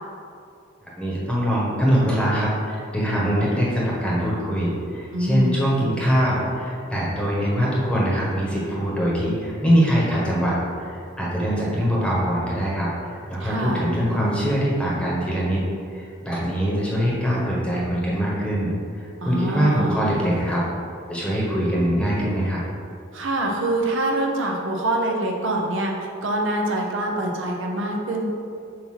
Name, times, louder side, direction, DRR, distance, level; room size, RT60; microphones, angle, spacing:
voice 1, 1.0-15.6 15.9-20.6 21.1-22.6, equal, 5° left, -6 dB, 1.2 m, -23 dB
voice 2, 5.1-5.5 13.4-13.8 19.2-19.9 23.1-25.9 26.2-28.3, right 1 dB, 65° right, 0 dB, 0.8 m, -25 dB
7.6 x 2.8 x 6.0 m, 2.5 s
head